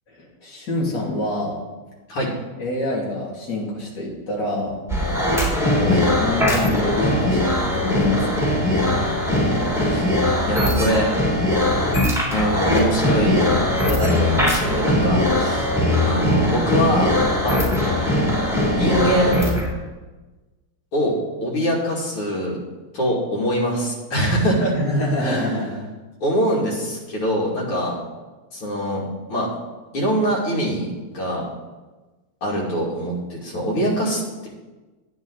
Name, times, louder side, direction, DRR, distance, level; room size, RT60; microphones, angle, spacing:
voice 1, 0.1-1.6 2.6-4.8 5.8-8.3 24.7-25.8, left 1 dB, 55° left, -4 dB, 3.2 m, -26 dB
sound 1, 4.9-19.7, left 1 dB, ahead, 3.2 m, -20 dB
voice 2, 10.4-11.1 12.3-15.7 16.0-17.1 17.4-17.6 18.7-19.6 20.9-21.1 21.4-22.6 22.9-24.7 25.2-25.7 26.2-28.0 28.5-29.0 29.3-29.5 29.9-31.4 32.4-34.5, equal, 80° left, -4 dB, 3.4 m, -23 dB
11.0 x 9.6 x 4.0 m, 1.2 s
omnidirectional pair, 2.4 m